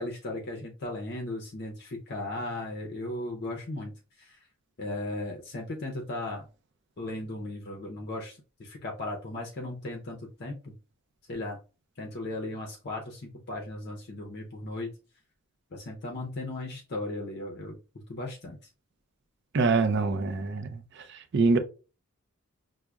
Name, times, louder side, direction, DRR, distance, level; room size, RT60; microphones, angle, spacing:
voice 1, 0.0-4.4 4.8-6.4 7.0-10.7 11.3-11.6 12.0-14.9 15.7-17.8 18.1-18.6, left 2 dB, 50° left, 0.6 m, -36 dB
voice 2, 19.5-20.8 21.1-21.6, right 4 dB, 50° right, 0.4 m, -25 dB
6.0 x 2.0 x 2.3 m
head